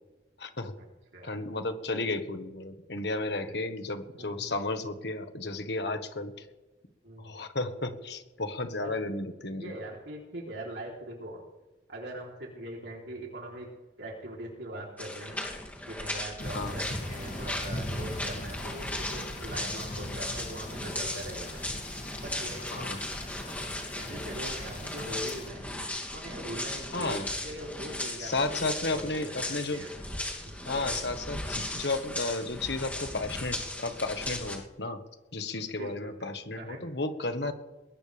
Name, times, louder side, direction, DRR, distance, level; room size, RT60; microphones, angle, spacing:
voice 1, 0.4-0.7 1.2-6.3 7.2-9.7 16.5-16.7 22.7-23.0 26.9-27.3 28.2-29.8 30.6-35.0 35.3-37.5, left 2 dB, 70° left, 7 dB, 1.6 m, -33 dB
voice 2, 4.2-4.6 7.0-7.4 8.8-8.9 9.5-11.4 11.9-13.7 14.0-15.4 15.9-23.1 23.9-25.6 26.1-29.9 30.4-30.7 35.8-36.3 36.6-36.8, right 1 dB, 90° right, -2 dB, 3.7 m, -42 dB
sound 1, 15.0-34.6, left 1 dB, 10° left, 2.7 m, -37 dB
sound 2, 16.4-25.5, left 1 dB, 45° left, 2.3 m, -40 dB
21.0 x 18.0 x 3.5 m, 1.1 s
head